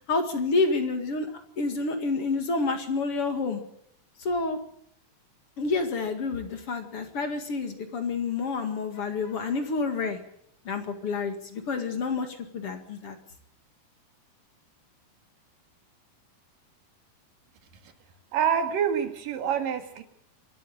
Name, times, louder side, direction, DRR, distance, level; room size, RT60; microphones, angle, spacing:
voice 1, 0.1-3.6 4.2-4.6 5.6-10.2 10.7-13.2, left 4 dB, 45° left, 6 dB, 2.8 m, -29 dB
voice 2, 18.3-20.0, right 8 dB, 90° right, 7 dB, 3.6 m, -26 dB
25.0 x 13.0 x 8.8 m, 0.69 s
omnidirectional pair, 3.8 m